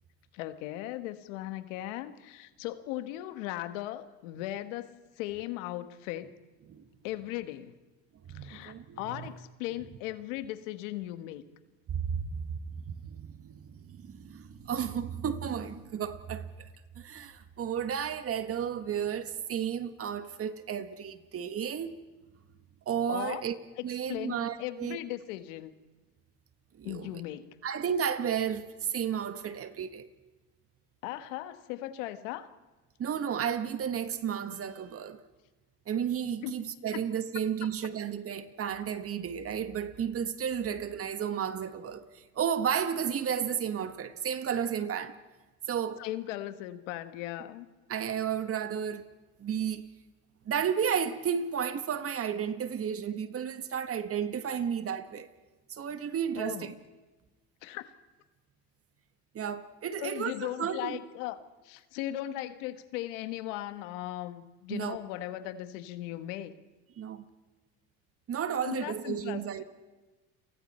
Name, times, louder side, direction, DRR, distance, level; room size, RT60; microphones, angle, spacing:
voice 1, 0.3-6.4 7.0-7.8 8.3-11.4 23.1-23.4 24.1-25.7 26.8-27.6 31.0-32.5 36.4-36.6 36.9-37.0 46.0-47.7 56.4-56.7 57.6-57.9 60.0-61.4 61.6-66.5 68.6-69.6, left 14 dB, 85° left, 1.5 m, -38 dB
voice 2, 8.3-9.3 11.9-12.6 12.9-16.7 16.9-21.9 22.8-23.5 23.8-25.0 26.8-27.1 27.6-30.1 33.0-35.2 35.9-45.1 45.7-46.0 47.9-49.0 49.4-49.9 50.4-55.3 55.7-56.7 59.3-61.0 64.7-65.0 67.0-67.2 68.3-69.6, right 8 dB, 40° right, 1.6 m, -33 dB
30.0 x 24.0 x 4.4 m
supercardioid pair, 110°, 36 cm